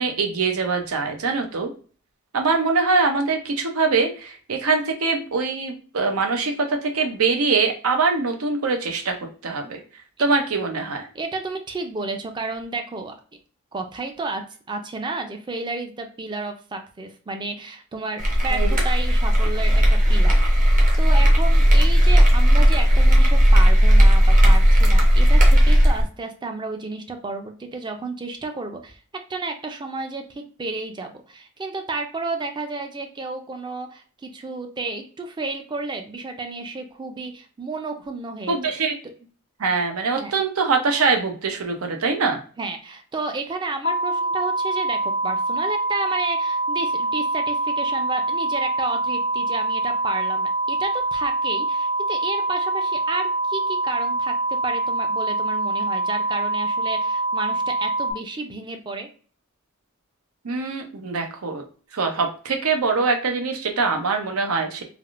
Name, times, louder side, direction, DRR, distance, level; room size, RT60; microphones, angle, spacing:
voice 1, 0.0-1.7 2.3-9.1 9.4-9.8 10.2-11.1 18.5-18.8 38.5-39.0 39.6-42.4 60.4-61.6 61.9-64.8, right 4 dB, 90° right, 4 dB, 0.7 m, -23 dB
voice 2, 11.1-13.1 13.7-38.7 40.1-40.3 42.6-59.1, right 3 dB, 20° right, 5 dB, 0.4 m, -32 dB
sound 1, 18.2-26.0, equal, 40° right, 0.8 m, -15 dB
sound 2, 43.8-58.1, right 2 dB, 55° left, 0.4 m, -24 dB
3.4 x 2.4 x 2.4 m, 0.40 s
head